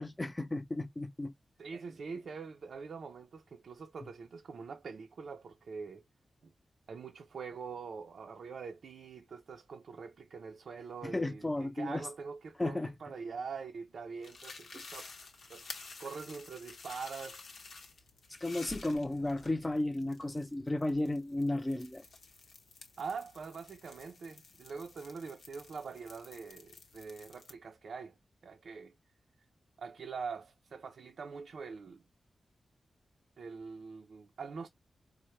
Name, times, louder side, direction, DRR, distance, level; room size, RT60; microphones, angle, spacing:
voice 1, 0.0-1.3 11.0-12.1 12.6-12.9 18.4-22.0, left 2 dB, 20° left, 0.6 m, -34 dB
voice 2, 1.6-6.0 6.4-6.5 6.9-15.1 15.5-15.7 16.0-17.4 23.0-28.1 28.4-28.9 29.8-32.0 33.4-34.7, right 5 dB, 75° right, 0.4 m, -44 dB
sound 1, 14.2-27.5, left 4 dB, 80° left, 0.8 m, -52 dB
4.4 x 2.1 x 3.0 m
wide cardioid pair, 95°, 0 cm